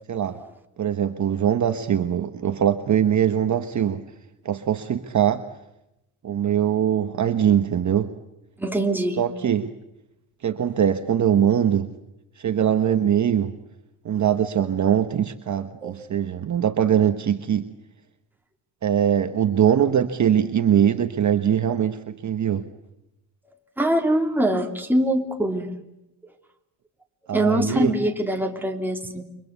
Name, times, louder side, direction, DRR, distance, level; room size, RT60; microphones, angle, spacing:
voice 1, 0.1-0.4 0.8-4.0 4.4-5.4 6.2-8.1 9.2-9.7 10.4-11.9 12.4-13.5 14.0-17.7 18.8-22.7 27.3-27.9, right 9 dB, 40° right, 8 dB, 1.3 m, -22 dB
voice 2, 8.6-9.2 15.8-15.9 23.8-25.7 27.3-29.2, right 1 dB, 5° right, 2 dB, 3.0 m, -23 dB
29.5 x 24.5 x 8.2 m, 0.89 s
cardioid pair, 135°, 47 cm